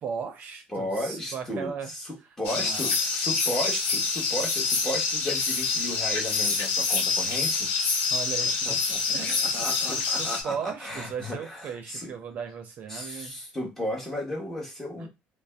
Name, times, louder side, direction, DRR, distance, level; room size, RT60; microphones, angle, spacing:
voice 1, 0.0-1.9 2.5-3.0 8.1-8.8 9.1-13.3 15.0-15.1, right 7 dB, 50° right, 6 dB, 0.6 m, -37 dB
voice 2, 0.7-2.1 2.4-7.7 8.6-12.1 12.9-15.1, equal, 10° left, 0 dB, 1.1 m, -34 dB
sound 1, 2.4-10.4, left 4 dB, 75° left, 0.7 m, -26 dB
2.5 x 2.1 x 3.3 m, 0.22 s
cardioid pair, 120°, 4 cm